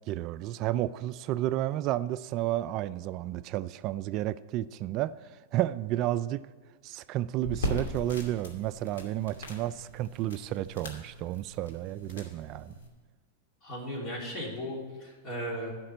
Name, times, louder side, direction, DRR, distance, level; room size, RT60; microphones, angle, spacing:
voice 1, 0.1-5.1 5.5-6.4 6.8-12.8, right 14 dB, 45° right, 0.3 m, -31 dB
sound 1, 7.4-12.9, equal, 85° left, 2.5 m, -39 dB
voice 2, 13.6-15.7, equal, 40° left, 3.4 m, -36 dB
11.5 x 6.0 x 7.9 m
hypercardioid pair, 120°, 0 cm